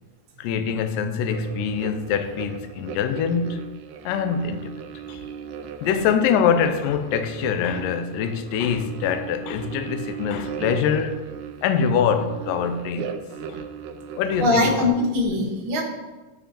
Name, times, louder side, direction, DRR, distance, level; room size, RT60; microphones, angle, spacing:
voice 1, 0.4-3.6 4.1-4.8 5.1-5.2 5.8-11.2 11.6-13.2 13.5-13.6 14.2-14.9, left 7 dB, 80° left, 2.2 m, -24 dB
sound 1, 1.2-14.7, right 7 dB, 80° right, 1.9 m, -37 dB
voice 2, 14.4-15.8, left 2 dB, 50° right, 1.9 m, -21 dB
13.5 x 5.1 x 2.9 m
omnidirectional pair, 3.9 m